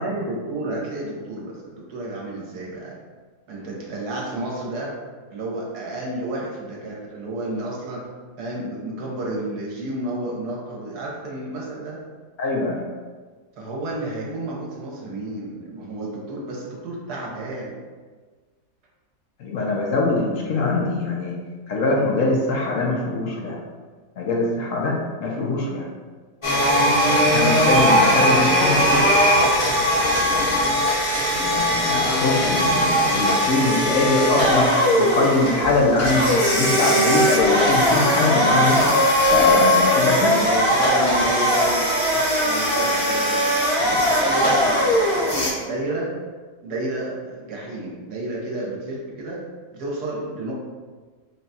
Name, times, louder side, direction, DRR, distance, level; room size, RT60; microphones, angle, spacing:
voice 1, 0.0-2.9 3.5-5.0 5.3-8.0 8.4-12.0 13.6-17.8 40.1-43.4 43.8-46.1 46.6-49.4 49.7-50.5, right 2 dB, 75° right, -3 dB, 1.4 m, -31 dB
voice 2, 12.4-12.8 19.4-21.4 21.7-23.6 24.2-25.9 27.1-29.0 31.3-34.7 35.0-38.8 39.3-40.4, left 2 dB, 65° left, -2 dB, 0.9 m, -22 dB
sound 1, 26.4-45.5, equal, 25° left, 0.7 m, -19 dB
3.8 x 2.3 x 4.0 m, 1.4 s
omnidirectional pair, 1.7 m